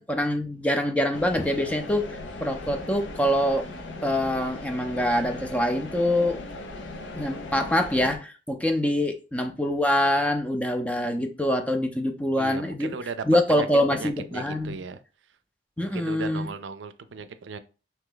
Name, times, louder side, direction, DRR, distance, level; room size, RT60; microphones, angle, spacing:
voice 1, 0.0-3.7 4.0-6.4 7.1-13.0 13.3-14.8 15.8-16.5, left 1 dB, 10° left, 0.4 m, -25 dB
sound 1, 1.1-8.2, left 2 dB, 90° left, 0.7 m, -38 dB
voice 2, 12.4-13.7 13.9-15.0 15.8-17.6, right 5 dB, 85° right, 0.4 m, -37 dB
3.2 x 2.8 x 3.8 m
head